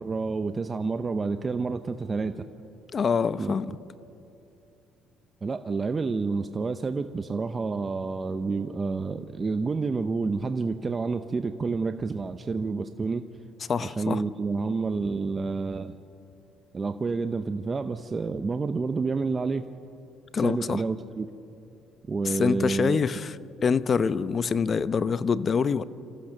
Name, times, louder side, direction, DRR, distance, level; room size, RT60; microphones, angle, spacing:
voice 1, 0.0-2.4 3.4-3.5 5.4-13.2 13.8-16.0 16.7-19.7 20.4-21.3 22.1-23.0, right 4 dB, 30° right, 9 dB, 0.7 m, -29 dB
voice 2, 2.9-3.7 13.7-14.2 20.3-20.8 22.2-23.3 23.6-25.8, left 6 dB, 40° left, 15 dB, 0.7 m, -25 dB
28.0 x 14.5 x 6.6 m, 2.7 s
supercardioid pair, 90°, 0 cm